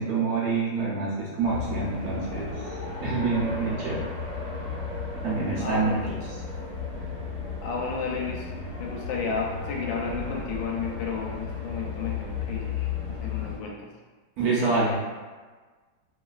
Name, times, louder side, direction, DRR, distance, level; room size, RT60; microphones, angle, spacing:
voice 1, 0.0-4.0 5.2-6.4 14.4-15.0, right 3 dB, 65° right, -6 dB, 1.0 m, -27 dB
sound 1, 1.4-13.6, left 4 dB, 50° left, 1.0 m, -34 dB
voice 2, 5.6-6.0 7.6-8.5 8.8-13.7, left 5 dB, 90° left, -1 dB, 1.3 m, -32 dB
3.0 x 2.6 x 2.3 m, 1.4 s
omnidirectional pair, 2.1 m